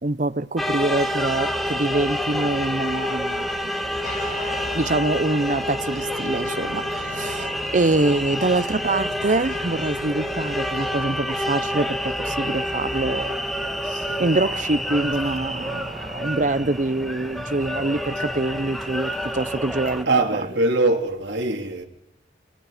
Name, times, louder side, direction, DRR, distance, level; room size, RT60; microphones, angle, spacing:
voice 1, 0.0-3.5 4.7-13.5 13.8-20.2, right 2 dB, 40° right, 0.8 m, -25 dB
sound 1, 0.6-20.0, equal, ahead, 1.6 m, -28 dB
sound 2, 4.0-11.8, left 1 dB, 45° left, 3.1 m, -40 dB
voice 2, 20.0-21.8, right 2 dB, 75° right, 3.1 m, -22 dB
29.0 x 26.5 x 5.1 m
head